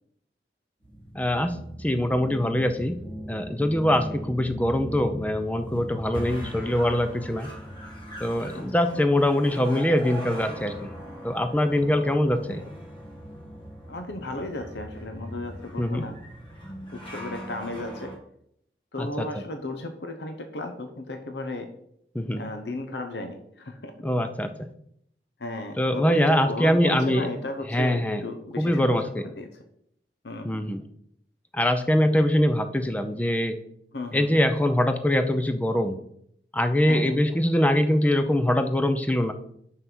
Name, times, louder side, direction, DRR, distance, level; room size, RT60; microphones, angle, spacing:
sound 1, 0.8-18.2, equal, 30° left, 1.5 m, -40 dB
voice 1, 1.1-3.0 3.3-7.5 8.2-10.9 11.2-12.6 15.8-16.0 19.0-19.3 22.1-22.5 24.0-24.7 25.8-27.3 27.7-28.2 28.6-29.3 30.4-30.8 31.5-33.6 34.1-36.0 36.5-39.3, left 1 dB, 10° left, 8 dB, 0.5 m, -23 dB
voice 2, 3.9-4.2 6.2-6.7 8.5-9.0 12.3-12.7 13.9-16.2 16.9-18.1 18.9-21.7 22.4-23.9 25.4-28.9 29.2-29.5 30.2-30.6 33.9-34.5 36.9-37.1, left 1 dB, 75° left, 6 dB, 0.9 m, -35 dB
5.7 x 5.6 x 6.1 m, 0.71 s
head